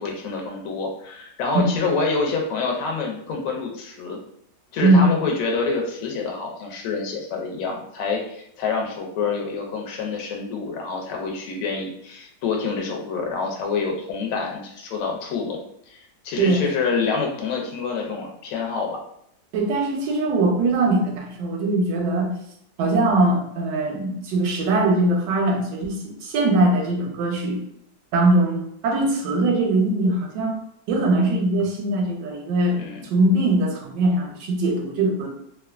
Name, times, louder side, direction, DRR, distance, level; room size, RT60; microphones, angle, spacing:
voice 1, 0.0-4.2 4.7-15.6 15.9-16.0 16.2-19.0 32.8-33.0, left 4 dB, 65° left, 1 dB, 0.9 m, -27 dB
voice 2, 4.8-5.2 16.4-16.6 19.5-22.3 22.8-27.6 28.1-30.6 30.9-32.8 33.1-35.3, right 2 dB, 85° right, 1 dB, 1.2 m, -21 dB
2.9 x 2.2 x 2.3 m, 0.73 s
omnidirectional pair, 1.9 m